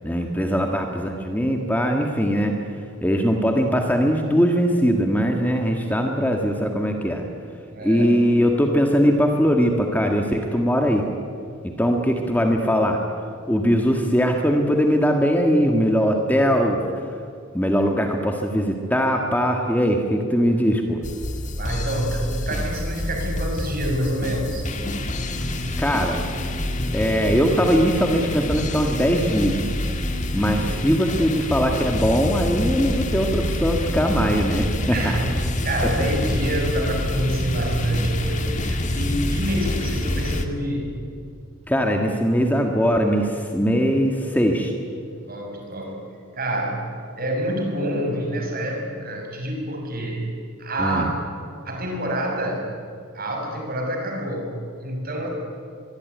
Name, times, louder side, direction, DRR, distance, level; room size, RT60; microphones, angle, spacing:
voice 1, 0.0-2.5 3.0-7.3 7.8-11.0 11.8-13.0 13.5-17.0 17.5-21.0 25.8-26.2 26.9-29.6 30.3-35.2 36.0-36.1 41.7-44.7 50.8-51.1, equal, 10° left, 2 dB, 1.8 m, -21 dB
voice 2, 7.7-8.2 21.6-24.7 30.3-31.0 34.9-40.9 45.3-46.0 46.3-50.3 50.6-51.1 51.6-52.8 53.1-55.3, right 1 dB, 45° right, 2 dB, 6.5 m, -27 dB
sound 1, 21.0-40.4, left 1 dB, 35° left, 1.9 m, -27 dB
24.0 x 23.0 x 9.5 m, 2.3 s
head